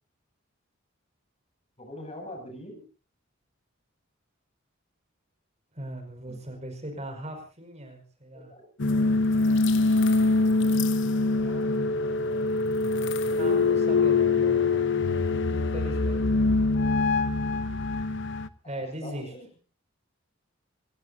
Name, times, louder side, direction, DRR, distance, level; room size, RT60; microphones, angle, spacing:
voice 1, 1.8-2.8 6.3-6.4 8.5-8.6 19.0-19.5, left 1 dB, 30° left, 3 dB, 7.4 m, -42 dB
voice 2, 5.7-8.5 10.1-11.0 11.4-12.3 13.4-14.9 15.5-16.2 18.6-19.3, right 1 dB, 35° right, 4 dB, 5.3 m, -40 dB
sound 1, 8.8-18.5, left 3 dB, 60° left, 0.9 m, -24 dB
28.5 x 17.5 x 2.7 m, 0.35 s
head